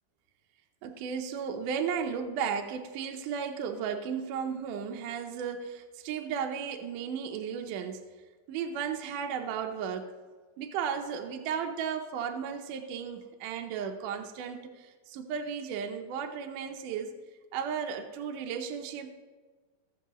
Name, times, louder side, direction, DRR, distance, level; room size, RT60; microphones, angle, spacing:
voice 1, 0.8-8.0 8.5-10.0 10.6-17.1 17.5-19.1, right 7 dB, 75° right, 4 dB, 2.1 m, -34 dB
17.5 x 6.5 x 3.0 m, 1.4 s
omnidirectional pair, 4.3 m